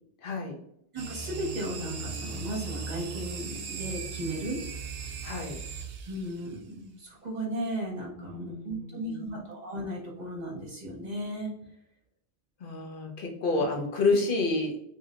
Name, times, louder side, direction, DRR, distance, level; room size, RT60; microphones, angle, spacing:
voice 1, 0.2-0.6 5.2-5.6 8.2-9.3 12.6-14.8, left 3 dB, 60° left, 2 dB, 0.8 m, -29 dB
voice 2, 0.9-4.6 6.1-6.6 6.8-11.5, right 1 dB, 45° right, -3 dB, 1.0 m, -35 dB
sound 1, 1.0-6.5, right 5 dB, 75° right, 0.8 m, -38 dB
3.1 x 2.8 x 2.4 m, 0.75 s
omnidirectional pair, 1.0 m